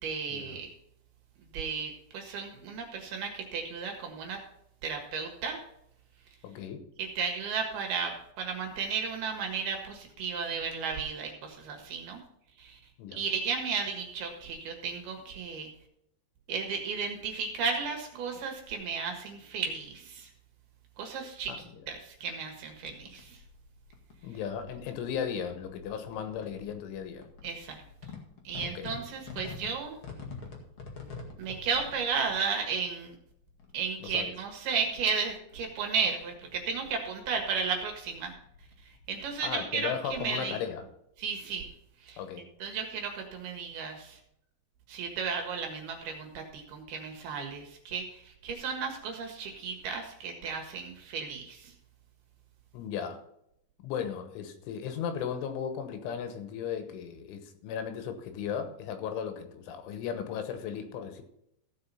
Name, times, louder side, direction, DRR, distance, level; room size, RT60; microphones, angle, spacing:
voice 1, 0.0-0.7 1.5-4.4 4.8-5.6 7.0-12.2 12.6-12.8 13.1-15.7 16.5-20.3 21.0-21.5 21.9-23.4 27.4-27.8 28.4-30.0 31.4-33.1 33.7-38.3 38.8-40.5 41.2-41.7 42.0-44.2 44.9-51.7, right 5 dB, 65° right, 3 dB, 3.1 m, -34 dB
voice 2, 6.4-6.9 13.0-13.2 21.5-21.8 24.2-27.3 28.6-28.9 34.0-34.3 39.4-40.9 42.2-42.4 52.7-53.2 53.8-61.2, left 8 dB, 80° left, 8 dB, 3.6 m, -36 dB
sound 1, 22.7-40.9, left 4 dB, 55° left, 1.5 m, -49 dB
16.0 x 5.7 x 5.5 m, 0.75 s
omnidirectional pair, 5.5 m